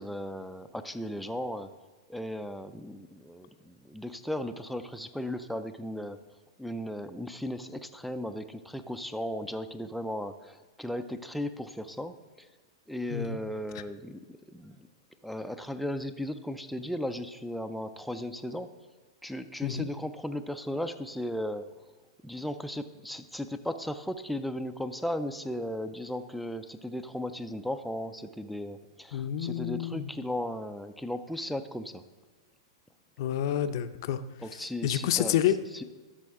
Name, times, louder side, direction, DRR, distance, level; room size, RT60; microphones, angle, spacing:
voice 1, 0.0-1.7 2.1-6.2 6.6-12.5 12.9-14.9 15.2-18.7 19.2-21.7 22.2-32.0 34.4-35.4 35.7-35.8, left 1 dB, ahead, 7 dB, 0.4 m, -36 dB
voice 2, 13.1-13.4 19.6-19.9 29.1-30.1 33.2-34.2 34.8-35.6, left 11 dB, 55° left, 10 dB, 0.5 m, -28 dB
12.0 x 6.3 x 3.6 m, 1.3 s
hypercardioid pair, 130°, 3 cm